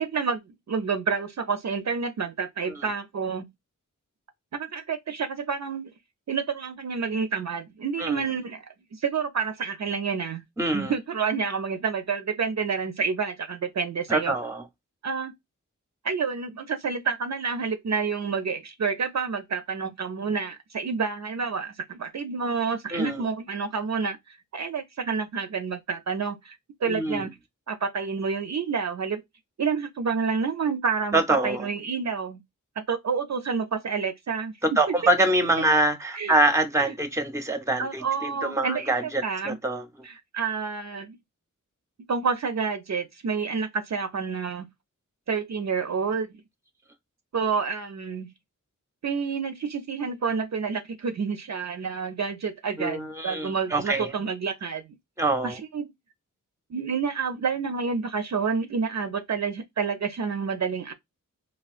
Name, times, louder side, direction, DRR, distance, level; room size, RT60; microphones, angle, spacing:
voice 1, 0.0-3.5 4.5-5.9 6.3-8.6 8.9-10.4 10.7-14.3 15.0-15.3 16.0-27.3 27.7-29.2 29.6-32.4 32.8-34.5 36.2-36.3 36.8-36.9 37.8-39.6 40.0-41.2 42.1-44.7 45.3-46.3 47.3-48.3 49.0-54.8 55.4-55.9 56.7-60.9, right 5 dB, 55° right, 0.5 m, -29 dB
voice 2, 10.6-10.9 14.1-14.6 22.9-23.3 26.8-27.3 31.1-31.7 34.6-39.9 52.8-54.1 55.2-55.6, right 2 dB, 10° right, 0.6 m, -25 dB
3.4 x 2.3 x 2.4 m
wide cardioid pair, 65°, 32 cm